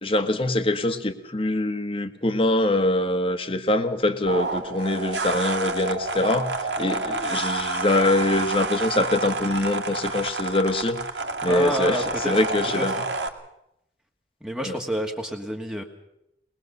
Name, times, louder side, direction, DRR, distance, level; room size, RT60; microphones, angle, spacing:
voice 1, 0.0-11.0 11.4-12.9 14.6-14.8, left 1 dB, 30° left, 8 dB, 1.5 m, -24 dB
sound 1, 4.3-13.3, right 3 dB, 85° right, 2.0 m, -29 dB
voice 2, 11.5-12.4 12.7-13.0 14.4-15.8, equal, 5° right, 2 dB, 1.5 m, -29 dB
22.5 x 20.5 x 6.6 m, 0.82 s
head